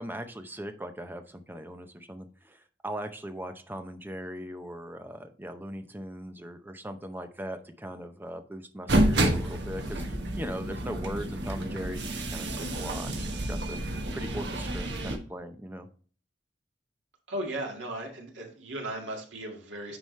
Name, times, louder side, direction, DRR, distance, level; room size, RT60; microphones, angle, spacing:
voice 1, 0.0-15.9, equal, 10° right, 7 dB, 0.7 m, -39 dB
sound 1, 8.9-15.2, right 1 dB, 65° right, 1.2 m, -29 dB
voice 2, 17.3-20.0, right 1 dB, 90° right, 1 dB, 2.0 m, -36 dB
9.2 x 4.9 x 3.2 m, 0.43 s
head